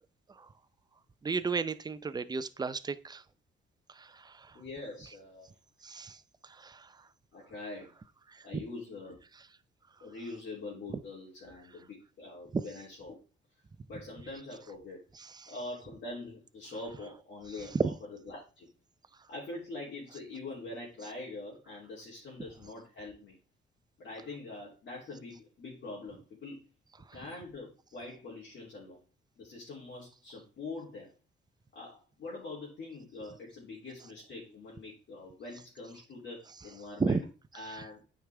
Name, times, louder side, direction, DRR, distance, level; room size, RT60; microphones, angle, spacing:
voice 1, 1.2-3.2 3.9-4.6 5.8-6.9 8.3-8.6 12.5-12.6 15.1-15.5 17.7-17.9 37.0-37.2 37.7-37.9, right 4 dB, 20° right, 13 dB, 0.5 m, -34 dB
voice 2, 4.5-5.5 7.3-7.9 8.4-9.2 10.0-13.2 13.9-15.0 15.5-18.7 19.3-23.4 24.0-26.6 27.1-29.0 29.4-31.1 31.7-37.2 37.5-38.0, left 2 dB, 60° left, -6 dB, 3.1 m, -44 dB
8.6 x 5.1 x 3.4 m, 0.34 s
cardioid pair, 90°, 20 cm